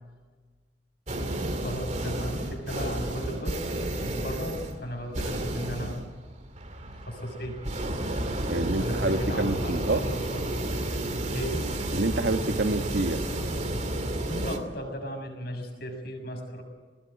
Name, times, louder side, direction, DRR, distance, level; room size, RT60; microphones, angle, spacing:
sound 1, 1.1-14.6, right 1 dB, 40° right, 2.6 m, -31 dB
voice 1, 1.5-6.0 6.9-7.6 8.7-10.5 11.3-11.7 14.2-16.6, equal, 60° left, 4 dB, 6.9 m, -36 dB
voice 2, 8.5-10.0 11.9-13.2, right 2 dB, 65° right, 8 dB, 1.4 m, -27 dB
20.0 x 20.0 x 9.3 m, 1.4 s
head